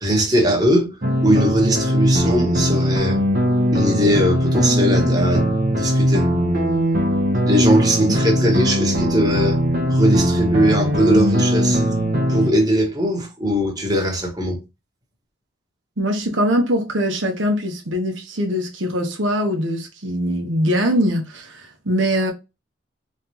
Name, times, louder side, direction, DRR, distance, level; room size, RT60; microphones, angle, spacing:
voice 1, 0.0-1.0 1.2-3.2 3.7-6.3 7.4-9.6 9.9-11.8 12.3-14.6, equal, 20° right, 1.2 m, -20 dB
sound 1, 1.0-12.5, equal, 50° right, 0.9 m, -19 dB
voice 2, 16.0-22.3, equal, 85° right, 1.0 m, -22 dB
3.9 x 3.2 x 2.8 m
head